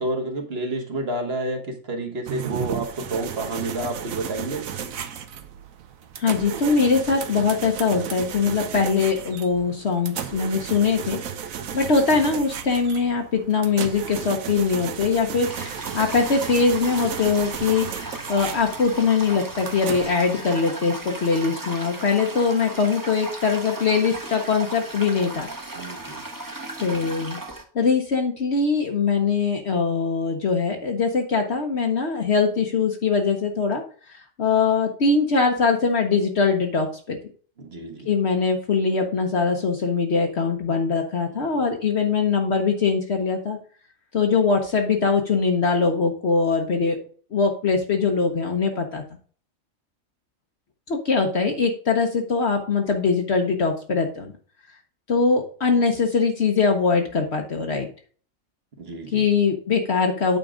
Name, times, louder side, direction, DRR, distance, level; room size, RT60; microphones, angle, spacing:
voice 1, 0.0-4.7 25.7-26.2 37.6-38.1 41.3-41.6 58.8-59.2, right 2 dB, 50° right, 1.6 m, -30 dB
sound 1, 2.3-20.1, right 8 dB, 75° right, 1.2 m, -34 dB
voice 2, 6.2-11.2 11.7-25.5 26.8-27.4 27.7-33.8 34.1-37.2 38.1-43.6 44.1-47.0 47.3-49.0 50.9-54.3 55.1-57.9 59.1-60.4, left 5 dB, 55° left, 1.1 m, -22 dB
Toilet flush, 15.4-27.6, right 2 dB, 15° right, 1.0 m, -36 dB
8.9 x 3.8 x 4.9 m
omnidirectional pair, 1.4 m